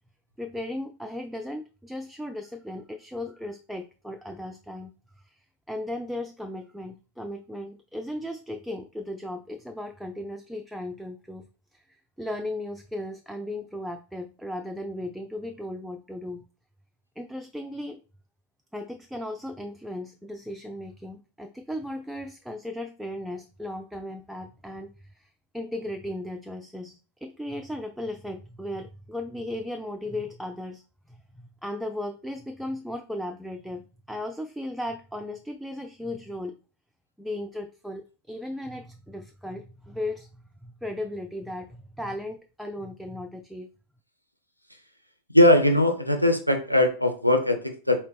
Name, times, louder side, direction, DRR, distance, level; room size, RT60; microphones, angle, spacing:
voice 1, 0.4-4.9 5.7-11.5 11.7-11.8 12.2-16.4 17.2-18.0 18.7-25.3 25.5-30.8 31.1-36.6 37.2-43.7, left 1 dB, ahead, 4 dB, 0.3 m, -36 dB
voice 2, 45.3-48.0, left 1 dB, 90° left, 6 dB, 0.6 m, -20 dB
4.1 x 2.8 x 3.3 m, 0.35 s
figure-of-eight pair, 90°, 0 cm